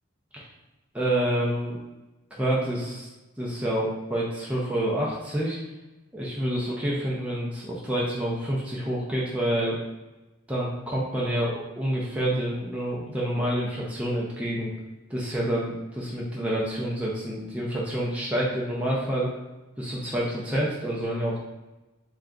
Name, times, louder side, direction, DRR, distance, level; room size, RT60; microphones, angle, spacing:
voice 1, 0.9-1.8 2.3-3.1 3.4-5.6 6.1-9.8 10.5-14.7 15.1-19.3 19.8-21.4, right 1 dB, 5° right, -6 dB, 0.5 m, -28 dB
3.7 x 2.3 x 3.7 m, 1.1 s
head